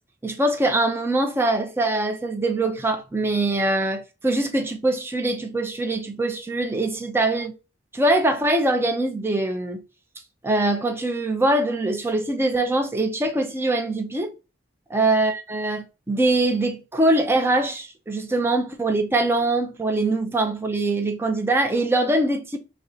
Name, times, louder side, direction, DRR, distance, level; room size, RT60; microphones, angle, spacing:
voice 1, 0.2-7.5 7.9-9.8 10.4-14.3 14.9-22.6, right 2 dB, 15° right, 0.5 m, -23 dB
4.0 x 3.2 x 2.6 m
head